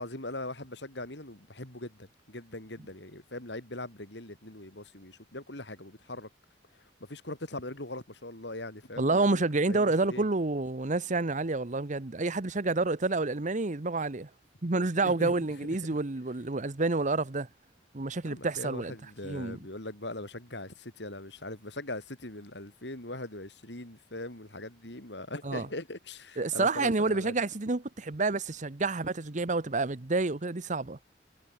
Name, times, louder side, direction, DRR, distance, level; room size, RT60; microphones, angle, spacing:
voice 1, 0.0-6.3 6.7-9.4 9.7-10.3 15.0-15.5 15.9-16.0 18.2-27.4, left 2 dB, 70° left, 5.1 m, -41 dB
voice 2, 9.0-14.3 14.6-17.5 17.9-18.9 19.2-19.6 25.4-25.7 26.4-31.0, right 3 dB, 45° right, 1.0 m, -29 dB
head